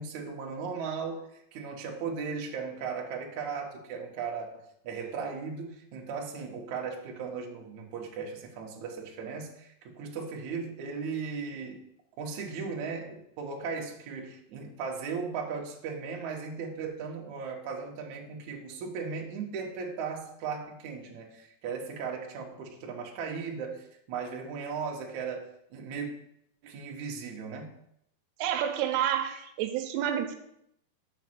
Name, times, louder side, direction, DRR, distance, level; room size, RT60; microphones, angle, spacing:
voice 1, 0.0-11.8 12.2-26.1 26.6-27.8, right 5 dB, 65° right, 0 dB, 2.0 m, -37 dB
voice 2, 28.4-30.4, right 10 dB, 85° right, 7 dB, 2.8 m, -29 dB
6.5 x 6.4 x 6.0 m, 0.76 s
omnidirectional pair, 4.8 m